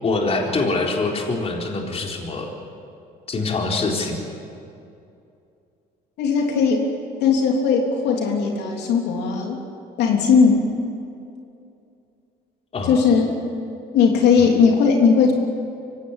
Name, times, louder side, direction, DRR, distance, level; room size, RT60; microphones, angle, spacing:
voice 1, 0.0-2.5 3.3-4.2 12.7-13.0, left 3 dB, 35° left, 0 dB, 4.1 m, -24 dB
voice 2, 6.2-6.9 7.2-9.6 10.0-10.7 12.9-13.3 13.9-15.3, left 5 dB, 80° left, 1 dB, 3.4 m, -18 dB
24.5 x 17.0 x 9.9 m, 2.6 s
cardioid pair, 110°, 17 cm